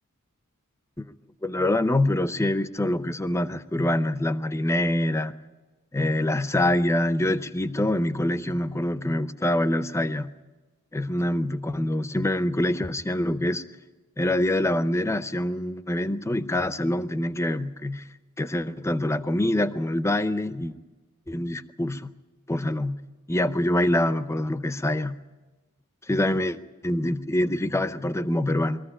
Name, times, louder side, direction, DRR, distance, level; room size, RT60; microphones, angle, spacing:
voice 1, 1.4-5.3 5.9-10.3 10.9-13.6 14.2-18.0 18.4-20.7 21.3-22.1 22.5-23.0 23.3-25.2 26.1-26.6 26.8-28.8, left 1 dB, 10° left, 13 dB, 0.6 m, -25 dB
22.0 x 14.5 x 9.8 m, 1.2 s
head